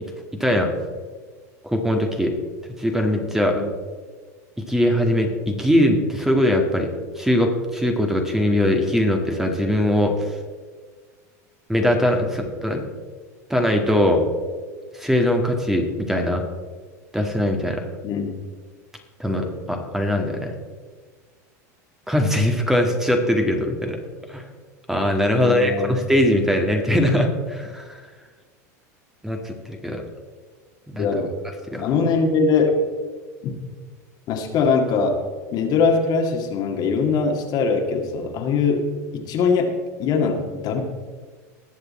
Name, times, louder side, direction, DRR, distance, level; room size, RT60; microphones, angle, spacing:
voice 1, 1.6-2.3 2.8-3.6 4.7-6.9 7.2-10.4 11.7-12.8 13.5-14.2 14.9-16.4 17.1-17.8 19.2-20.5 22.1-24.0 24.3-24.4 24.9-28.0 29.2-30.0 30.9-31.1 31.7-31.9, left 1 dB, 5° right, 3 dB, 1.7 m, -21 dB
voice 2, 18.0-18.3 25.3-26.0 31.0-31.3 31.8-32.8 33.4-33.5 34.3-35.2 35.5-40.8, left 4 dB, 50° left, 3 dB, 2.1 m, -22 dB
19.5 x 6.7 x 4.2 m, 1.5 s
hypercardioid pair, 105°, 9 cm